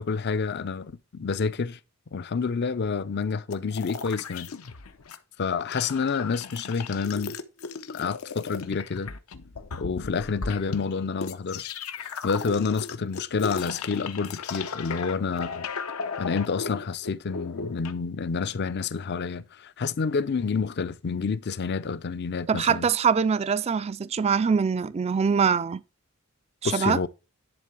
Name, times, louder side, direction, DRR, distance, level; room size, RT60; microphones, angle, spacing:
voice 1, 0.0-1.8 2.1-4.5 5.4-7.4 7.9-9.1 9.8-15.6 16.2-22.9 26.6-27.1, left 5 dB, 50° left, 0.5 m, -29 dB
sound 1, 3.5-5.2 5.4-17.9, left 5 dB, 80° left, 0.8 m, -36 dB
voice 2, 22.5-25.8 26.6-27.0, right 6 dB, 30° right, 0.3 m, -23 dB
10.5 x 3.7 x 6.0 m
head